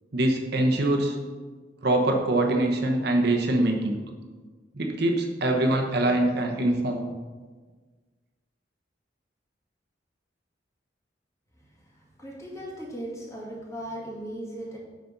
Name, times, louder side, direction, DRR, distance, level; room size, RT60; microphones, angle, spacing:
voice 1, 0.1-1.1 1.8-4.0 4.7-7.1, right 1 dB, 60° right, 3 dB, 1.0 m, -23 dB
voice 2, 11.6-14.8, right 1 dB, 15° left, -4 dB, 2.0 m, -38 dB
9.2 x 4.0 x 5.9 m, 1.4 s
head